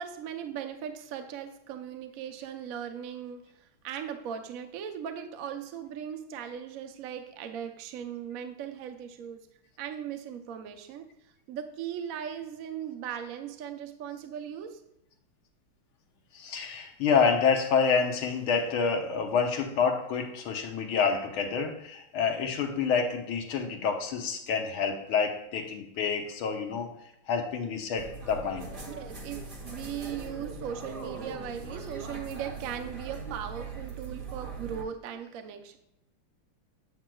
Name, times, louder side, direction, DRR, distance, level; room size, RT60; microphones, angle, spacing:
voice 1, 0.0-9.5 9.8-11.1 11.5-14.8 28.8-35.8, right 8 dB, 70° right, 6 dB, 0.8 m, -38 dB
voice 2, 16.3-26.9 27.3-28.7, left 5 dB, 75° left, 4 dB, 1.7 m, -28 dB
sound 1, 28.0-34.8, right 4 dB, 40° right, 0.8 m, -40 dB
8.5 x 7.4 x 2.3 m, 0.82 s
omnidirectional pair, 2.4 m